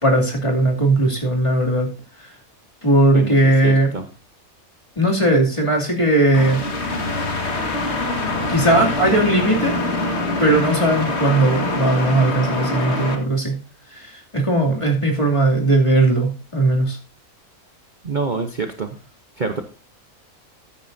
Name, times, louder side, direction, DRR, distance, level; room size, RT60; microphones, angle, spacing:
voice 1, 0.0-1.9 2.8-3.9 5.0-6.6 8.5-9.8 10.4-13.5 13.9-17.0, right 2 dB, 20° left, 0 dB, 2.7 m, -18 dB
voice 2, 3.1-4.0 18.0-19.0 19.4-19.6, right 4 dB, 40° right, 6 dB, 1.0 m, -26 dB
sound 1, 6.3-13.2, left 2 dB, 50° left, 2.0 m, -24 dB
14.0 x 9.1 x 2.7 m, 0.35 s
omnidirectional pair, 1.5 m